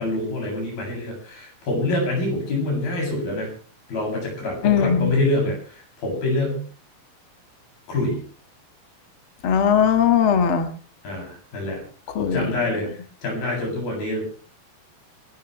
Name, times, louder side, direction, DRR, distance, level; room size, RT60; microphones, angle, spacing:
voice 1, 0.0-3.5 3.9-6.6 7.9-8.2 11.0-11.8 12.2-14.2, left 2 dB, 75° left, 0 dB, 9.7 m, -26 dB
voice 2, 4.6-5.1 9.4-10.7 12.2-12.5, left 8 dB, 50° left, 7 dB, 1.9 m, -19 dB
28.5 x 13.5 x 3.4 m, 0.40 s
omnidirectional pair, 4.2 m